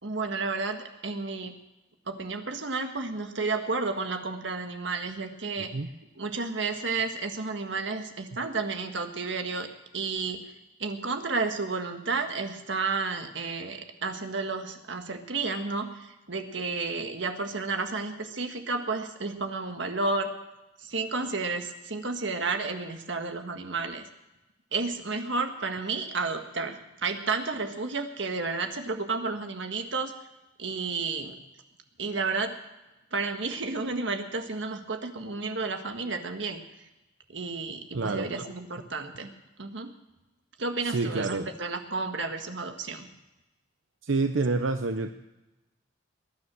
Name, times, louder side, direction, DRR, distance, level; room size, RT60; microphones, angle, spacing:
voice 1, 0.0-1.5 2.1-5.7 6.2-9.7 9.9-10.5 10.8-20.3 20.8-24.0 24.7-30.1 30.6-31.4 32.0-32.6 33.1-36.6 37.3-39.3 39.6-39.9 40.6-43.1, right 4 dB, 65° right, 5 dB, 1.6 m, -31 dB
voice 2, 37.9-38.3 40.8-41.5 44.0-45.1, right 3 dB, 85° right, 7 dB, 0.8 m, -27 dB
21.0 x 9.9 x 6.2 m, 0.99 s
head